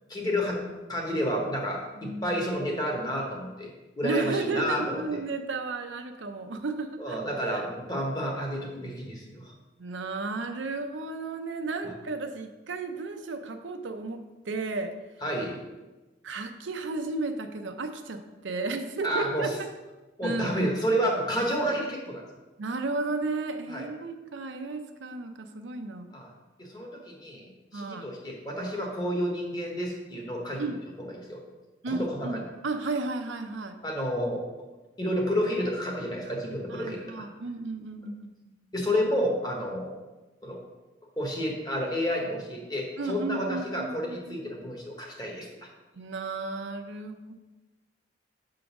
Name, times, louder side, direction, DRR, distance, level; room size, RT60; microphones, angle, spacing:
voice 1, 0.1-0.6 0.9-5.0 7.0-9.5 15.2-15.6 19.0-19.5 20.2-22.2 23.7-23.8 26.1-26.3 26.6-30.7 31.1-31.4 31.9-32.4 33.8-34.4 35.0-37.3 38.7-40.0 40.4-40.6 41.2-45.7, equal, 20° left, 0 dB, 1.2 m, -30 dB
voice 2, 2.0-2.4 4.0-7.2 7.5-7.6 9.8-14.9 16.2-19.5 20.2-21.0 22.6-26.1 27.7-28.1 30.6-30.8 31.8-33.8 36.7-38.5 43.0-44.5 46.0-47.3, right 3 dB, 75° right, 6 dB, 0.6 m, -33 dB
6.1 x 3.8 x 5.9 m, 1.1 s
head